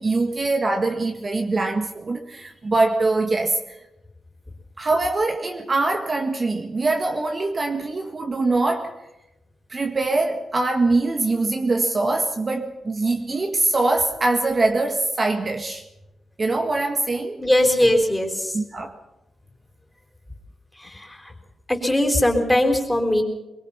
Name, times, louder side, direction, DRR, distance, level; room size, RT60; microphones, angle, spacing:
voice 1, 0.0-3.8 4.8-9.0 9.7-15.8 16.4-17.5 18.5-19.0, right 2 dB, 35° right, 1.8 m, -23 dB
voice 2, 17.4-18.6 20.8-21.3 21.7-23.2, left 1 dB, 5° left, 4.2 m, -20 dB
23.5 x 22.0 x 5.8 m
wide cardioid pair, 125°, 0 cm